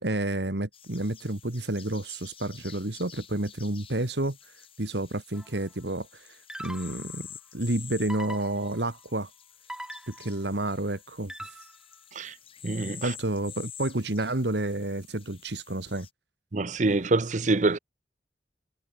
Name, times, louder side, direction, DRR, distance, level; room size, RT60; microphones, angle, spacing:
voice 1, 0.0-4.4 4.8-7.3 7.5-9.3 10.1-11.5 13.0-16.1, right 2 dB, 75° right, 1.9 m, -30 dB
sound 1, 0.7-16.1, left 9 dB, 30° left, 6.3 m, -49 dB
sound 2, 5.3-5.7 6.5-7.2 8.1-9.0 9.7-10.5 11.3-11.9, right 1 dB, 5° right, 2.8 m, -42 dB
voice 2, 12.6-13.1 16.5-17.8, right 3 dB, 45° right, 0.7 m, -25 dB
head